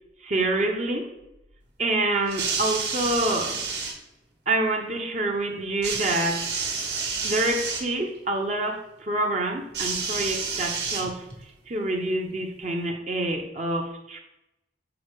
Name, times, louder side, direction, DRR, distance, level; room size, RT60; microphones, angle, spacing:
voice 1, 0.2-1.1 1.8-3.6 4.5-6.5 7.2-11.3 11.7-14.2, right 2 dB, 40° right, 2 dB, 0.7 m, -27 dB
sound 1, 2.3-4.0 5.8-7.9 9.7-11.4 12.4-12.5, right 5 dB, 65° right, 1.3 m, -29 dB
6.9 x 4.3 x 3.5 m, 0.92 s
head